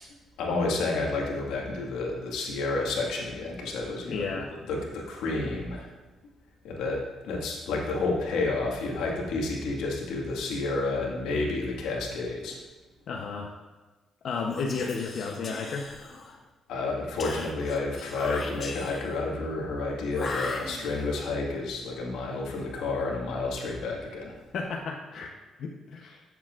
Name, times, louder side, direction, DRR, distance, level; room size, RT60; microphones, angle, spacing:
voice 1, 0.4-4.4 4.7-5.9 6.6-12.6 16.7-24.3, left 3 dB, 90° left, -1 dB, 1.7 m, -30 dB
voice 2, 4.1-4.5 13.1-13.5 14.2-15.9 24.5-25.3 25.6-26.2, left 4 dB, 65° left, -1 dB, 0.8 m, -32 dB
Whispering, 14.5-16.4 17.2-19.2 20.1-21.2, left 3 dB, 45° left, 1.3 m, -38 dB
13.5 x 7.0 x 2.5 m, 1.2 s
cardioid pair, 90°, 0 cm